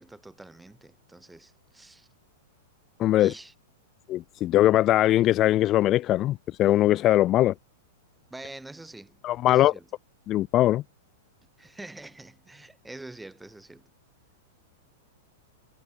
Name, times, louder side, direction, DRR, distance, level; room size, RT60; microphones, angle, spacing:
voice 1, 0.0-2.1 3.2-3.5 8.3-9.2 9.5-9.9 11.6-13.9, right 2 dB, 5° right, 7.1 m, -45 dB
voice 2, 3.0-3.3 4.1-7.5 9.2-9.7 10.3-10.8, left 14 dB, 25° left, 0.3 m, -21 dB
supercardioid pair, 165°, 0 cm